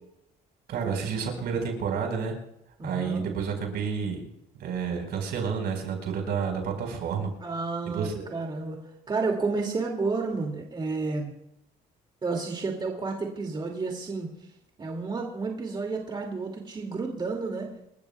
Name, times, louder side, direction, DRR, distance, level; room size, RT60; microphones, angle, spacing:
voice 1, 0.7-2.3 2.8-4.3 4.6-7.3 7.9-8.3, right 6 dB, 70° right, 3 dB, 4.7 m, -30 dB
voice 2, 2.8-3.3 7.4-8.8 9.1-11.3 12.2-14.3 14.8-17.7, right 4 dB, 25° right, 1 dB, 2.5 m, -31 dB
28.0 x 14.0 x 2.3 m, 0.82 s
cardioid pair, 110°, 17 cm